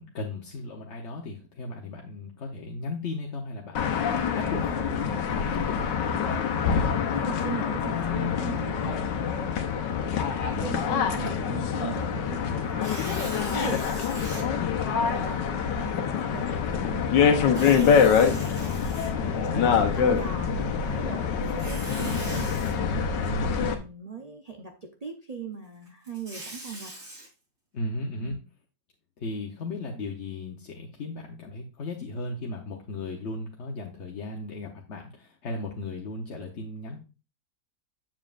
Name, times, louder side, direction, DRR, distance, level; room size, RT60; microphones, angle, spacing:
voice 1, 0.0-6.0 9.6-9.8 19.3-19.7 27.7-28.4 29.2-37.0, left 2 dB, 50° left, 0 dB, 1.0 m, -36 dB
sound 1, 3.7-23.7, left 6 dB, 80° left, 1.5 m, -25 dB
voice 2, 7.1-9.0 10.6-14.4 15.1-18.6 19.2-22.6 23.1-26.9 28.2-28.4, right 4 dB, 80° right, 3 dB, 0.3 m, -39 dB
Tearing, 12.7-14.4 15.1-15.2 17.4-19.5 21.4-22.7 25.9-27.3, right 1 dB, 65° right, 4.0 m, -41 dB
7.3 x 7.3 x 2.5 m, 0.31 s
omnidirectional pair, 1.9 m